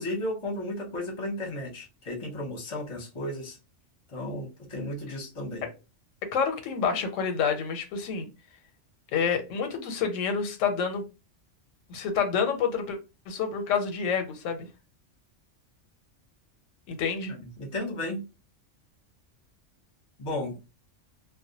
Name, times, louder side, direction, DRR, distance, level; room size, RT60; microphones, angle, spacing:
voice 1, 0.0-3.6 4.1-5.7 17.4-18.2 20.2-20.6, left 1 dB, 30° left, 0.7 m, -34 dB
voice 2, 6.3-8.3 9.1-11.0 11.9-13.0 13.3-14.7 16.9-17.3, left 6 dB, 90° left, 1.0 m, -28 dB
2.2 x 2.1 x 2.6 m
omnidirectional pair, 1.3 m